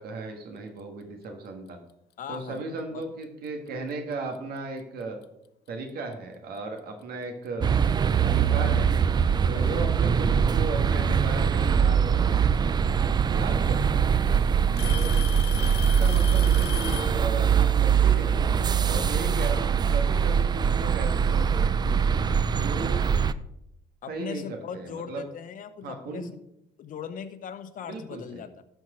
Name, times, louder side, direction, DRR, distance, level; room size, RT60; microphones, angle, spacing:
voice 1, 0.0-1.8 2.3-5.2 5.7-7.7 8.2-8.9 9.5-12.3 13.3-14.2 14.8-15.1 15.8-18.5 18.9-21.8 22.4-23.0 24.1-25.3 25.8-26.3 27.8-28.4, right 3 dB, 65° right, 4 dB, 1.6 m, -36 dB
voice 2, 2.2-2.6 2.9-3.0 9.5-9.9 10.9-11.2 14.8-15.1 24.0-26.4 26.8-28.6, left 8 dB, 55° left, 10 dB, 0.9 m, -39 dB
Alarm / Tick-tock, 3.2-3.5 4.3-4.4 5.2-5.3 7.0-7.1 8.3-8.4 9.7-10.1 11.9-12.0 13.2-13.3 13.6-14.1 14.8-17.2, left 14 dB, 70° left, 0.5 m, -37 dB
sound 1, 7.6-23.3, right 7 dB, 25° right, 0.4 m, -23 dB
12.5 x 4.6 x 4.9 m, 0.82 s
cardioid pair, 110°, 17 cm